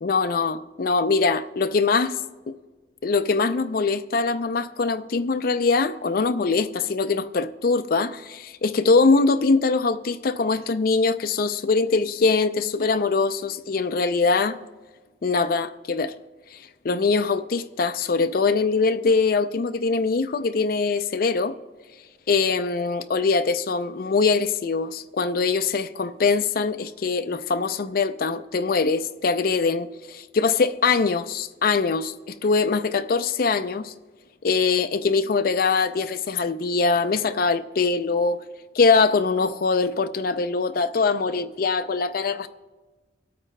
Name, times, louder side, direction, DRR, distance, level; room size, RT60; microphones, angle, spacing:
voice 1, 0.0-2.2 2.5-2.6 3.0-14.6 15.2-16.1 16.5-16.6 16.8-21.5 22.3-33.9 34.4-38.4 38.7-42.5, left 4 dB, 55° left, 0.4 m, -22 dB
24.5 x 8.6 x 2.2 m
head